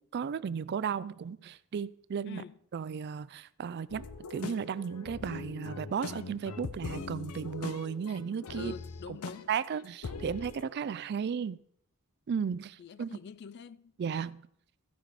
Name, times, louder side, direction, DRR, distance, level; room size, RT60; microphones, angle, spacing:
voice 1, 0.0-2.4 2.7-8.7 9.5-11.6 12.3-13.1 14.0-14.4, right 7 dB, 50° right, 0.3 m, -35 dB
voice 2, 2.2-2.6 8.5-9.5 12.8-13.9, left 5 dB, 50° left, 0.4 m, -45 dB
sound 1, 3.9-10.7, left 4 dB, 90° left, 0.6 m, -42 dB
14.5 x 5.0 x 4.8 m
head